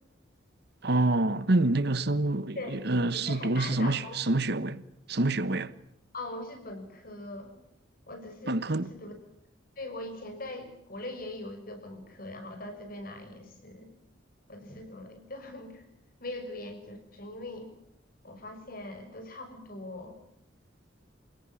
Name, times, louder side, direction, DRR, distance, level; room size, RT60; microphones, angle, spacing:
voice 1, 0.8-4.8 5.1-5.7 8.5-8.9, right 2 dB, 60° right, 1.2 m, -27 dB
voice 2, 3.1-4.2 6.1-7.6 8.1-9.1 9.8-13.9 14.5-15.8 16.2-17.7 18.2-20.2, left 2 dB, 50° left, 6.1 m, -41 dB
29.0 x 17.5 x 9.8 m
head